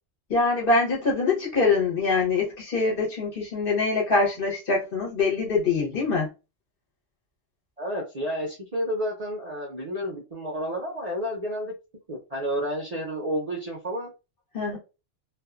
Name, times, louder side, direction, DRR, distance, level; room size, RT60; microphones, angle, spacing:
voice 1, 0.3-6.3 14.5-14.8, left 3 dB, 50° left, 1.1 m, -24 dB
voice 2, 7.8-11.7 12.1-14.1, equal, 45° right, 0.5 m, -30 dB
2.6 x 2.4 x 2.4 m
omnidirectional pair, 1.3 m